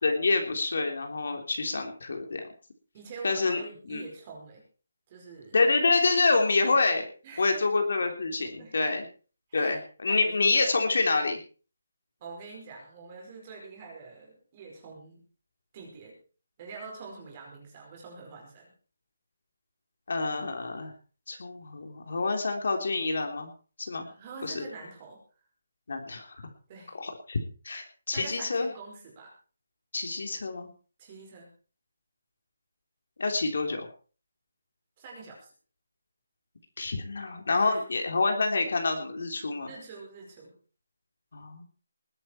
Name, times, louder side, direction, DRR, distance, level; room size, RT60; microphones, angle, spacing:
voice 1, 0.0-2.4 3.2-3.6 3.9-4.1 5.5-7.1 7.4-9.1 9.5-11.4 20.1-20.9 21.3-23.5 23.8-24.1 24.4-24.6 25.9-26.4 27.0-27.4 27.6-28.7 29.9-30.7 33.2-33.9 36.8-39.7 41.3-41.7, left 3 dB, 50° left, 4 dB, 3.5 m, -27 dB
voice 2, 2.9-4.6 5.1-5.6 7.2-7.6 8.6-9.0 9.5-9.8 10.1-11.0 12.2-15.3 15.7-16.2 16.6-18.7 24.0-25.2 26.7-27.0 28.1-29.3 31.0-31.5 35.0-35.5 37.5-37.8 39.7-40.5, right 4 dB, 20° right, 0 dB, 5.0 m, -45 dB
20.5 x 11.0 x 4.5 m, 0.39 s
hypercardioid pair, 180°, 0 cm